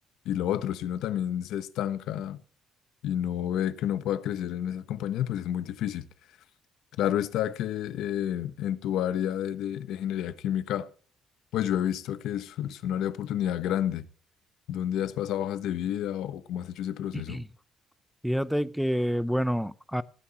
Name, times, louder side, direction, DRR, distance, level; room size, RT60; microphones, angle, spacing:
voice 1, 0.2-2.4 3.0-6.1 7.0-10.9 11.5-14.0 14.7-17.4, left 10 dB, 80° left, 1.0 m, -30 dB
voice 2, 17.1-17.5 18.2-20.0, equal, ahead, 0.6 m, -28 dB
18.5 x 9.7 x 3.0 m
cardioid pair, 130°, 0 cm